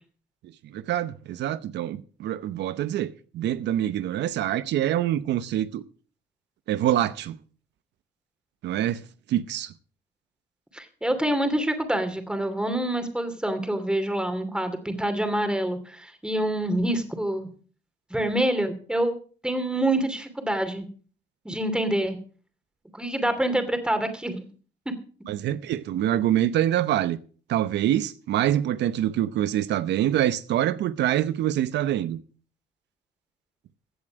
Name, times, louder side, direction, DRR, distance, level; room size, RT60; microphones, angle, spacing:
voice 1, 0.7-5.8 6.7-7.4 8.6-9.0 9.3-9.7 25.3-27.2 27.5-32.2, right 12 dB, 85° right, 0.8 m, -25 dB
voice 2, 10.7-17.5 18.1-19.2 19.4-20.8 21.4-22.2 22.9-24.4, right 1 dB, 5° right, 2.6 m, -26 dB
15.5 x 7.6 x 6.2 m
cardioid pair, 100°, 18 cm